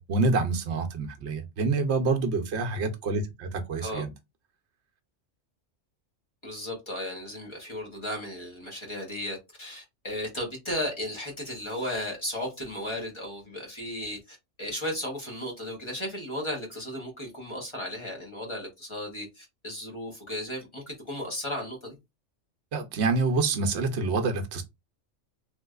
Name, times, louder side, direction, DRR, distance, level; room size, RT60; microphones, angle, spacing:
voice 1, 0.0-4.1 22.7-24.6, right 3 dB, 65° right, 0.9 m, -27 dB
voice 2, 6.4-22.0, left 1 dB, 25° left, 1.2 m, -35 dB
3.3 x 2.9 x 2.3 m
omnidirectional pair, 1.3 m